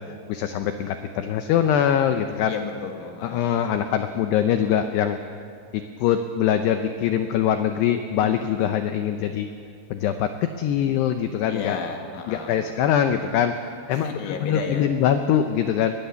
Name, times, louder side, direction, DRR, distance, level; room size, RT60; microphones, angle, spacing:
voice 1, 0.1-2.5 3.2-5.2 5.7-9.5 9.9-10.3 10.6-11.8 12.3-15.9, left 9 dB, 90° left, 7 dB, 2.4 m, -23 dB
voice 2, 2.4-3.5 3.9-4.0 11.5-12.6 13.9-14.9, left 5 dB, 75° left, 3 dB, 4.3 m, -33 dB
22.5 x 20.0 x 7.0 m, 2.5 s
omnidirectional pair, 5.8 m